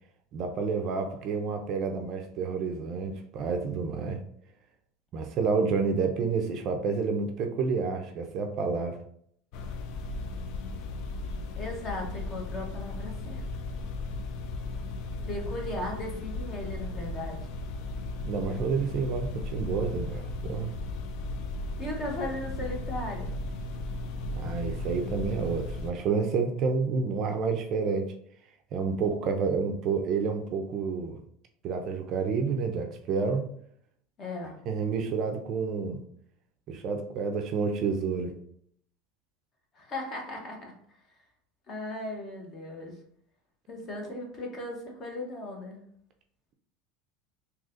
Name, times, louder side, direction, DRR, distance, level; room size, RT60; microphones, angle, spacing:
voice 1, 0.3-4.2 5.1-9.0 15.2-15.3 18.2-20.7 24.4-28.1 28.7-31.2 31.6-33.5 34.7-36.0 36.7-38.3, right 5 dB, 40° right, 5 dB, 0.4 m, -29 dB
sound 1, 9.5-25.9, left 2 dB, 50° left, 0.3 m, -36 dB
voice 2, 11.6-13.4 15.3-17.4 21.8-23.3 34.2-34.6 39.7-41.0 41.7-42.9 43.7-45.9, left 1 dB, 30° left, 1 dB, 0.8 m, -37 dB
3.9 x 2.8 x 2.4 m, 0.66 s
supercardioid pair, 160°, 0 cm